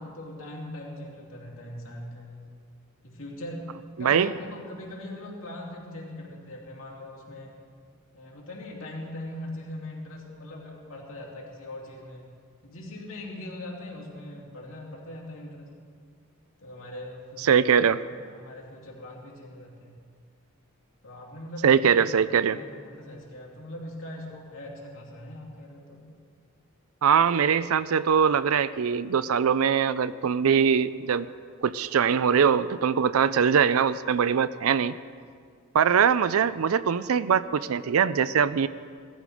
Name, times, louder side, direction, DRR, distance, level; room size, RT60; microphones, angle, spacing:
voice 1, 0.0-2.5 3.0-3.7 4.0-7.6 8.1-12.3 12.6-15.7 16.6-17.8 18.1-20.0 21.0-26.1, left 1 dB, 70° left, -2 dB, 3.2 m, -41 dB
voice 2, 4.0-4.3 17.4-18.0 21.6-22.6 27.0-31.3 31.6-35.0 35.7-38.7, right 7 dB, 90° right, 15 dB, 0.4 m, -22 dB
18.0 x 13.5 x 5.0 m, 2.1 s
head